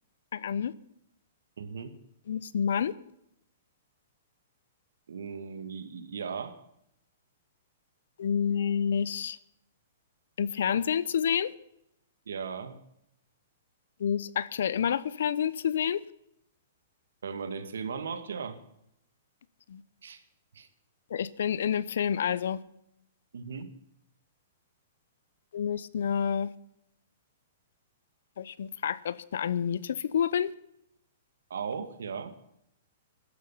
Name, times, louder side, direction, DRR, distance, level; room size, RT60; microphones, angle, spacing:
voice 1, 0.3-0.7 2.3-2.9 8.2-9.4 10.4-11.5 14.0-16.0 19.7-19.8 21.1-22.6 25.5-26.5 28.4-30.5, left 8 dB, 75° left, 19 dB, 0.9 m, -28 dB
voice 2, 1.6-1.9 5.1-6.5 12.3-12.7 17.2-18.6 20.0-20.2 20.5-20.7 23.3-23.7 31.5-32.3, right 6 dB, 85° right, 11 dB, 2.0 m, -37 dB
16.0 x 12.0 x 5.8 m, 0.78 s
hypercardioid pair, 145°, 0 cm